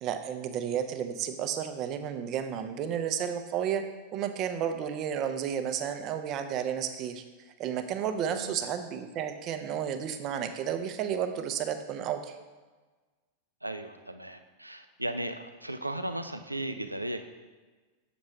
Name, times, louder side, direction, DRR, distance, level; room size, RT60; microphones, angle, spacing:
voice 1, 0.0-3.8 4.1-7.2 7.6-12.3, right 8 dB, 35° right, 7 dB, 0.6 m, -32 dB
voice 2, 13.6-17.2, right 1 dB, 85° right, 8 dB, 0.4 m, -36 dB
7.2 x 6.1 x 3.1 m, 1.3 s
figure-of-eight pair, 90°, 0 cm